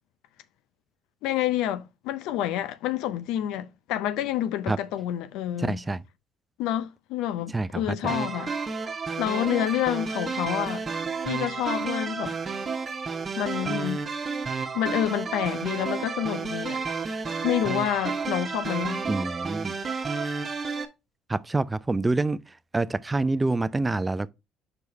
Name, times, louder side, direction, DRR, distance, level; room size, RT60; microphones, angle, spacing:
voice 1, 1.2-5.8 6.6-8.5 9.2-10.9 11.2-12.3 13.4-14.0 14.7-16.8 17.4-19.0, left 12 dB, 80° left, 0.6 m, -28 dB
voice 2, 5.6-6.0 7.5-8.0 19.1-19.7 21.3-22.4 22.7-24.3, right 2 dB, 20° right, 0.5 m, -26 dB
sound 1, 8.1-20.8, right 4 dB, 40° right, 1.2 m, -31 dB
5.4 x 4.7 x 4.1 m
hypercardioid pair, 60°, 0 cm